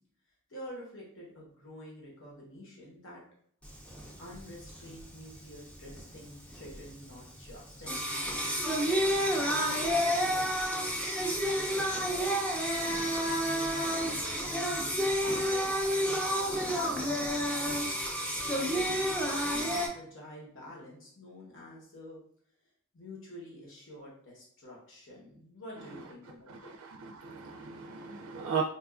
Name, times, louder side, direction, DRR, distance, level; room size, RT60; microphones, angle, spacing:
voice 1, 0.5-3.2 4.2-8.4 9.1-10.7 11.1-12.2 12.8-18.1 18.4-22.2 22.9-26.7, left 1 dB, 60° left, -4 dB, 1.0 m, -48 dB
Singing, 3.6-19.9, equal, 5° left, 0.4 m, -30 dB
voice 2, 26.5-28.6, right 7 dB, 85° right, 2 dB, 0.4 m, -37 dB
4.2 x 2.3 x 2.3 m, 0.64 s
head